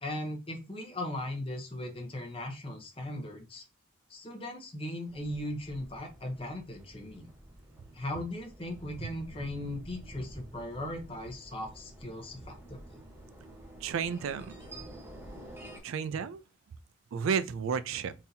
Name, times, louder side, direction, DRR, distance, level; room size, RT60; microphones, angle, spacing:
voice 1, 0.0-3.6 4.1-7.3 7.9-13.0, left 1 dB, 25° left, 0.8 m, -38 dB
sound 1, 5.0-15.8, right 1 dB, 10° right, 0.9 m, -49 dB
voice 2, 13.8-14.5 15.8-16.4 17.1-18.1, right 6 dB, 80° right, 0.3 m, -32 dB
3.8 x 2.8 x 2.7 m
head